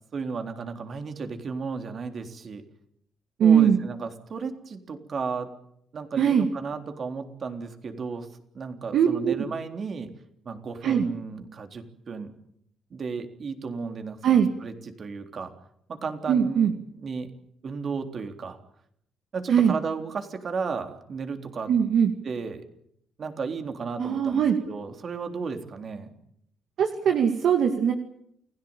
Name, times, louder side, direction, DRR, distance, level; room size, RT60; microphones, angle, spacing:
voice 1, 0.1-2.6 3.4-5.5 5.9-8.3 8.5-10.1 10.4-12.3 12.9-15.5 15.9-17.3 17.6-18.6 19.3-21.7 22.2-22.6 23.2-26.1, right 5 dB, 50° right, 6 dB, 3.7 m, -34 dB
voice 2, 3.4-3.8 6.2-6.5 8.9-9.3 10.8-11.1 14.2-14.5 16.3-16.7 19.5-19.7 21.7-22.1 24.0-24.6 26.8-27.9, right 8 dB, 70° right, 4 dB, 2.2 m, -20 dB
29.0 x 17.0 x 8.9 m, 0.73 s
cardioid pair, 90°, 0 cm